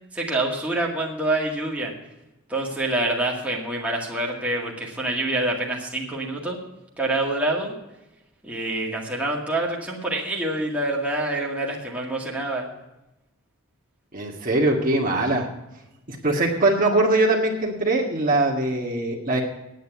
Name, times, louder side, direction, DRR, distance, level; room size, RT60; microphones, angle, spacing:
voice 1, 0.1-1.9 2.5-6.6 7.0-7.7 8.4-12.7, right 2 dB, 5° right, -3 dB, 2.0 m, -26 dB
voice 2, 14.1-15.5 16.1-19.4, right 2 dB, 40° right, -1 dB, 1.8 m, -22 dB
9.4 x 9.3 x 7.9 m, 0.95 s
head